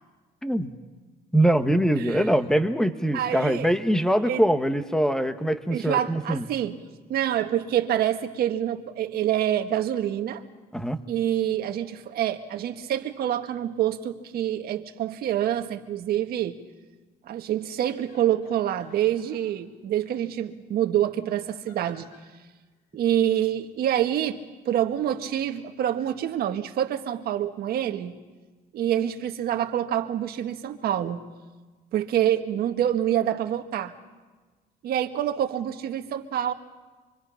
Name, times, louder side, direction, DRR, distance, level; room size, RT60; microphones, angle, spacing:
voice 1, 1.3-6.4 10.7-11.0, right 1 dB, 5° left, 9 dB, 1.3 m, -23 dB
voice 2, 3.1-3.7 4.2-4.4 5.7-6.8 7.1-10.4 11.1-16.6 17.3-22.1 22.9-24.4 24.6-28.1 28.7-31.2 31.9-33.9 34.8-36.5, right 11 dB, 65° right, 6 dB, 1.6 m, -26 dB
sound 1, 17.8-19.4 21.4-22.3 23.4-23.7 24.1-24.2, left 3 dB, 60° left, 7.1 m, -55 dB
26.0 x 24.0 x 5.8 m, 1.3 s
cardioid pair, 110°, 17 cm